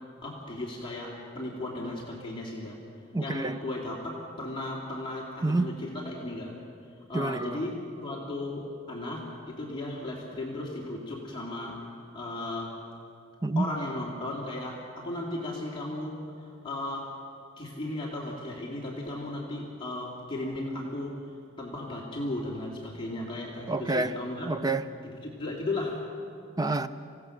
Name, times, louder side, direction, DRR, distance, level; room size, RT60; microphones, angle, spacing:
voice 1, 0.2-2.8 3.2-6.5 7.1-7.8 8.0-11.8 12.1-12.8 13.6-17.1 17.6-21.2 21.6-24.5 25.0-26.0, left 2 dB, 25° left, -3 dB, 2.7 m, -35 dB
voice 2, 3.1-3.6 5.4-5.7 7.1-7.7 13.4-13.7 23.7-24.1 24.4-24.9 26.6-26.9, right 2 dB, 20° right, 11 dB, 0.6 m, -28 dB
26.5 x 17.0 x 6.5 m, 2.5 s
head